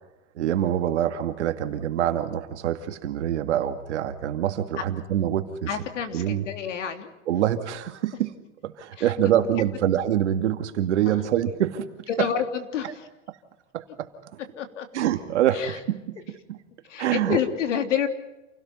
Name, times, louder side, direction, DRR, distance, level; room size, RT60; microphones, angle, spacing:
voice 1, 0.3-5.7 6.1-6.4 7.3-8.3 8.6-12.3 13.3-13.4 13.7-14.4 14.9-16.6 17.0-17.4, right 11 dB, 75° right, 7 dB, 2.3 m, -25 dB
voice 2, 5.7-7.1 9.0-9.3 11.1-11.2 12.1-13.1 14.6-14.9 15.5-15.8 16.8-18.1, left 8 dB, 90° left, 7 dB, 3.2 m, -29 dB
28.5 x 17.5 x 5.8 m, 0.99 s
supercardioid pair, 180°, 35 cm